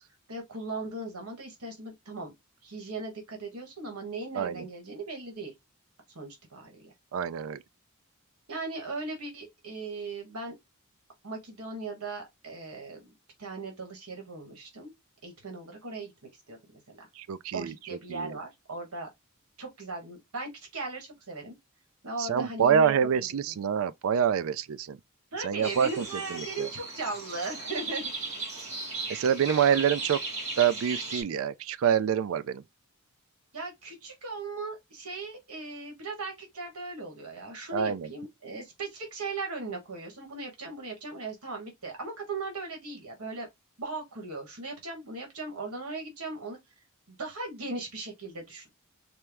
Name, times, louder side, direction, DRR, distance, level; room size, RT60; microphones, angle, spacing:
voice 1, 0.3-2.3 2.6-5.5 6.1-6.9 8.5-10.6 11.2-13.1 13.4-14.9 15.2-16.1 16.5-17.1 17.5-19.1 19.6-21.6 22.0-23.0 23.3-23.4 25.3-28.1 33.5-43.5 43.8-46.6 47.1-48.7, right 3 dB, 80° right, 1.3 m, -38 dB
voice 2, 4.3-4.7 7.1-7.6 17.2-17.7 18.1-18.4 22.2-25.0 25.4-26.7 29.1-30.2 30.6-32.6 37.7-38.1, right 8 dB, 65° right, 0.3 m, -26 dB
sound 1, 25.6-31.2, right 3 dB, 30° right, 2.1 m, -37 dB
4.4 x 2.0 x 3.4 m
head